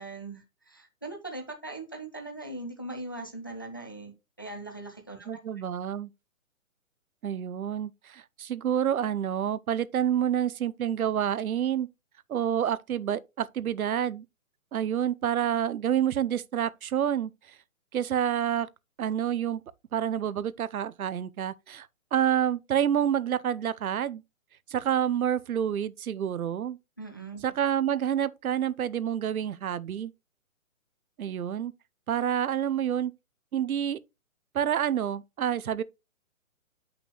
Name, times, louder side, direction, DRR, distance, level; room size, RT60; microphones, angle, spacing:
voice 1, 0.0-5.6 27.0-27.4, right 2 dB, 15° left, 0.4 m, -40 dB
voice 2, 5.3-6.1 7.2-11.9 12.3-14.2 14.7-17.3 17.9-18.7 19.0-19.6 19.9-24.2 24.7-26.8 27.4-30.1 31.2-31.7 32.1-33.1 33.5-34.0 34.5-35.8, right 9 dB, 85° right, 0.7 m, -28 dB
7.8 x 5.9 x 3.0 m
hypercardioid pair, 165°, 42 cm